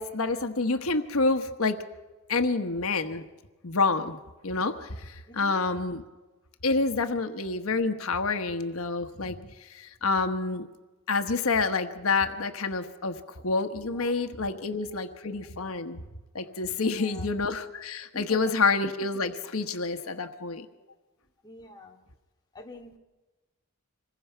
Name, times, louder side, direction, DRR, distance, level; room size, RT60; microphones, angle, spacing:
voice 1, 0.0-1.8 2.3-3.2 3.6-4.2 4.4-6.0 6.6-10.7 11.1-13.2 13.4-16.0 16.3-20.7, left 3 dB, 90° left, 7 dB, 1.3 m, -28 dB
voice 2, 5.3-5.6 14.0-14.1 14.5-14.7 16.8-17.3 18.1-18.7 21.4-22.0 22.5-22.9, left 2 dB, 20° left, 0 dB, 2.5 m, -45 dB
26.5 x 21.5 x 5.7 m, 1.2 s
head